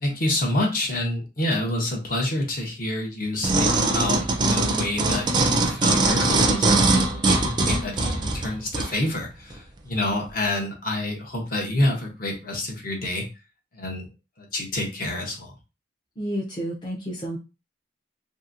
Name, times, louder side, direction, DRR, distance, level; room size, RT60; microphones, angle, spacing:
voice 1, 0.0-13.3 13.7-14.1 14.4-15.5, left 1 dB, 50° left, 0 dB, 0.8 m, -28 dB
sound 1, 3.4-8.9 9.5-9.6, right 2 dB, 25° right, 0.4 m, -21 dB
voice 2, 16.2-17.4, equal, 25° left, -3 dB, 0.6 m, -30 dB
2.8 x 2.6 x 2.5 m, 0.29 s
head